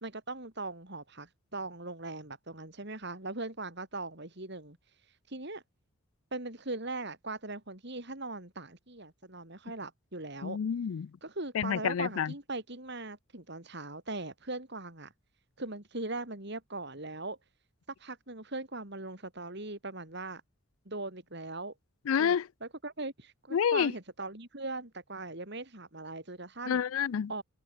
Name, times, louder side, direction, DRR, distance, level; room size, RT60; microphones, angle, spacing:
voice 1, 0.0-4.8 5.3-5.6 6.3-10.6 11.2-15.1 15.6-17.4 18.0-20.4 20.9-21.7 22.2-26.8 27.3-27.4, right 2 dB, 50° right, 3.7 m, -40 dB
voice 2, 10.4-11.1 11.5-12.3 22.1-22.5 23.5-23.9 26.7-27.3, left 8 dB, 70° left, 0.4 m, -28 dB
open air
head